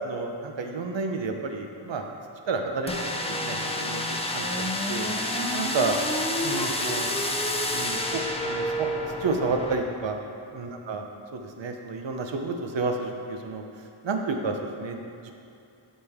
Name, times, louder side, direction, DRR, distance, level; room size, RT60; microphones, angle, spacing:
voice 1, 0.0-2.1 2.5-3.0 3.3-4.0 4.3-5.1 5.5-6.0 6.4-7.1 7.7-8.9 9.2-10.1 10.5-13.6 14.0-15.0 15.2-15.3, right 3 dB, 70° right, 3 dB, 0.9 m, -30 dB
sound 1, 2.9-9.7, left 1 dB, 15° left, 0.7 m, -28 dB
12.5 x 5.5 x 3.6 m, 2.7 s
wide cardioid pair, 115°, 47 cm